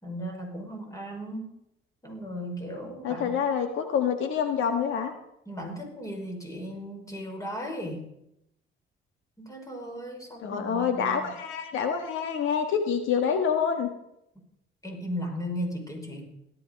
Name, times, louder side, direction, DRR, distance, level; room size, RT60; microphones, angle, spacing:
voice 1, 0.0-1.5 2.0-3.3 5.5-8.1 9.4-11.3 14.8-16.2, equal, 15° left, 2 dB, 5.1 m, -36 dB
voice 2, 3.0-5.1 10.4-13.9, left 7 dB, 80° left, 6 dB, 1.5 m, -27 dB
17.0 x 12.5 x 5.3 m, 0.81 s
cardioid pair, 90°, 20 cm